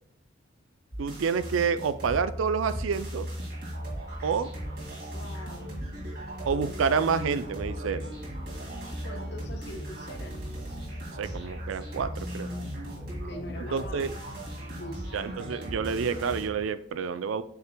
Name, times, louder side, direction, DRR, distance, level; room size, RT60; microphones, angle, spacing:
sound 1, 0.9-2.2 2.7-16.5, right 1 dB, 55° right, 2.1 m, -40 dB
voice 1, 1.0-3.3 4.2-4.5 6.4-8.0 11.2-12.5 13.7-14.2 15.1-17.4, right 6 dB, 90° right, 13 dB, 0.4 m, -28 dB
sound 2, 1.3-16.6, left 1 dB, 20° right, 2.4 m, -40 dB
voice 2, 5.1-5.7 8.9-10.4 13.1-14.1 14.5-15.1, left 1 dB, 60° left, 5 dB, 0.9 m, -44 dB
7.8 x 5.7 x 2.2 m, 0.67 s
head